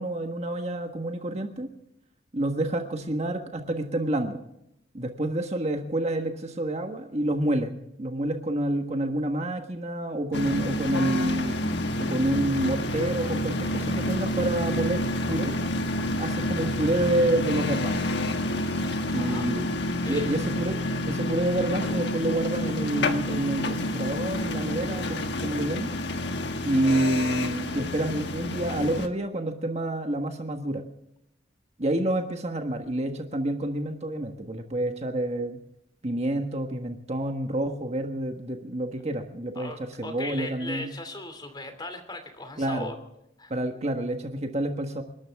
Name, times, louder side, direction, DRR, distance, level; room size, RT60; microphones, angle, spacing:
voice 1, 0.0-1.7 2.3-4.4 4.9-11.5 12.0-15.5 16.0-18.0 19.1-19.6 20.1-20.8 21.0-25.9 26.6-30.8 31.8-35.6 36.0-39.7 40.0-40.9 42.6-42.9 43.5-45.0, right 1 dB, 35° right, 5 dB, 1.5 m, -28 dB
sound 1, 10.3-29.1, left 1 dB, 60° left, 1.4 m, -29 dB
voice 2, 19.8-20.3 39.5-42.9 43.4-43.5, left 2 dB, 20° left, 7 dB, 2.8 m, -38 dB
29.0 x 12.5 x 3.6 m, 0.81 s
head